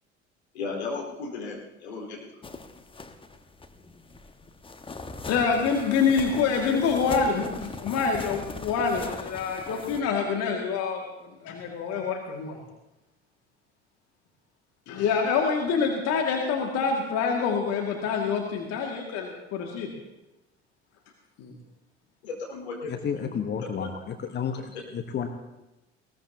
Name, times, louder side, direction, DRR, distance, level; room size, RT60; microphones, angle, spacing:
voice 1, 0.5-2.2 22.2-22.9 23.2-23.3 23.6-23.9, left 4 dB, 70° left, -2 dB, 4.3 m, -35 dB
sound 1, 2.4-10.0, left 3 dB, 15° left, 1.2 m, -40 dB
voice 2, 5.3-12.6 14.9-19.9 21.4-21.5, left 5 dB, 45° left, 1 dB, 2.1 m, -26 dB
voice 3, 22.9-25.3, left 7 dB, 30° left, 6 dB, 1.2 m, -31 dB
20.0 x 18.5 x 2.8 m, 0.97 s
figure-of-eight pair, 60°, 34 cm